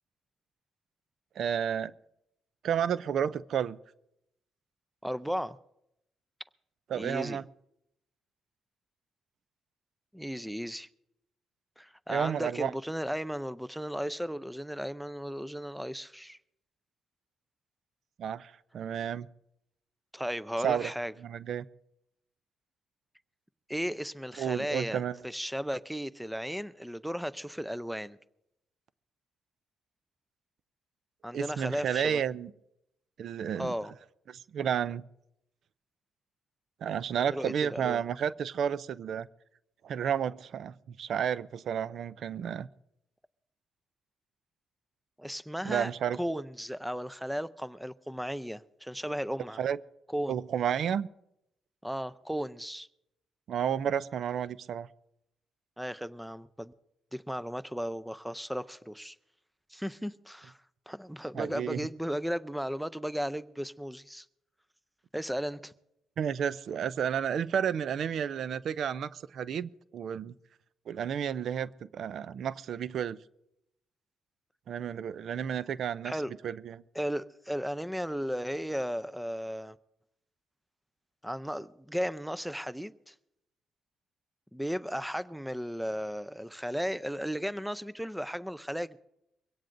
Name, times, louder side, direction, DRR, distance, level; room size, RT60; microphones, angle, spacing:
voice 1, 1.4-1.9 2.6-3.8 6.9-7.4 12.1-12.7 18.2-19.3 20.6-20.9 21.2-21.6 24.4-25.2 31.3-32.5 33.2-33.7 34.3-35.0 36.8-39.3 39.8-42.7 45.6-46.2 49.6-49.8 50.3-51.1 53.5-54.9 61.4-61.9 66.2-70.3 70.9-73.2 74.7-76.2 76.4-76.8, right 8 dB, 65° right, 0.4 m, -31 dB
voice 2, 5.0-5.6 6.9-7.4 10.1-10.9 11.8-16.4 20.1-21.1 23.7-28.2 31.2-32.2 33.6-33.9 37.1-38.0 45.2-45.9 46.2-49.6 50.1-50.4 51.8-52.9 55.8-56.7 57.1-59.2 59.7-60.6 60.9-64.3 65.1-65.7 76.0-76.3 76.9-79.8 81.2-83.1 84.5-89.0, equal, ahead, 0.5 m, -35 dB
23.0 x 17.0 x 2.6 m
cardioid pair, 90°, 0 cm